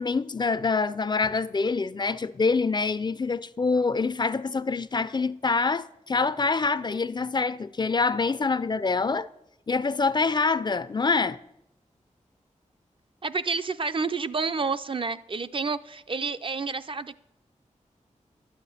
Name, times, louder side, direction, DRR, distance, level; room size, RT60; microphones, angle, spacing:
voice 1, 0.0-9.3 9.7-11.4, left 4 dB, 35° left, 0.4 m, -25 dB
voice 2, 13.2-17.2, right 4 dB, 45° right, 0.4 m, -29 dB
11.5 x 5.8 x 8.4 m
wide cardioid pair, 110°, 13 cm